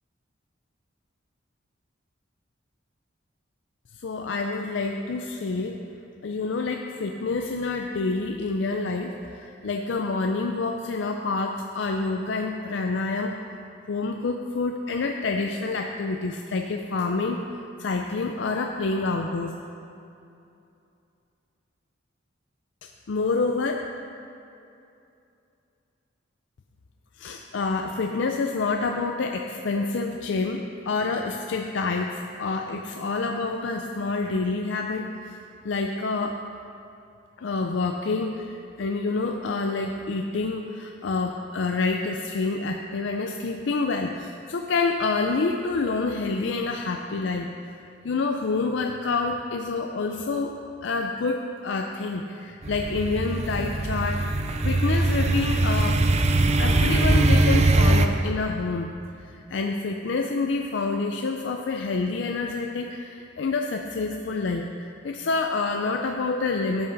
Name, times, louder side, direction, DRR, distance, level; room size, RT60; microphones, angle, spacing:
voice 1, 4.0-5.8 6.2-13.5 13.9-17.4 17.8-19.6 22.8-23.8 27.2-36.4 37.4-47.5 48.0-50.6 50.8-54.3 54.6-56.1 56.6-58.9 59.2-66.9, left 3 dB, 70° left, 3 dB, 0.5 m, -28 dB
sound 1, 52.6-58.1, right 2 dB, 35° right, 0.5 m, -21 dB
12.5 x 8.2 x 4.0 m, 2.7 s
head